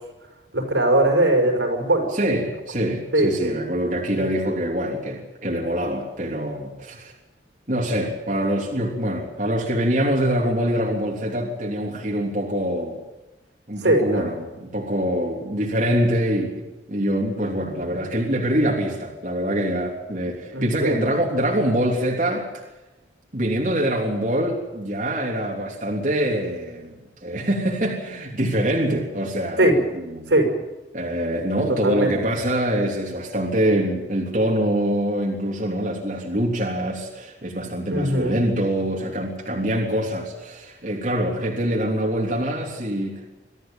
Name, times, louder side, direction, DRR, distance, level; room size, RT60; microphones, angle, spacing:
voice 1, 0.5-2.1 3.1-3.6 4.1-4.3 13.8-14.2 20.5-21.1 29.6-29.7 30.3-30.5 31.8-32.1 37.9-38.4, right 1 dB, 85° right, 3 dB, 5.7 m, -20 dB
voice 2, 2.1-7.1 7.7-13.0 13.7-22.6 23.3-26.9 27.2-30.3 30.9-43.3, right 1 dB, 45° right, -1 dB, 3.4 m, -24 dB
24.0 x 14.5 x 9.1 m, 1.1 s
head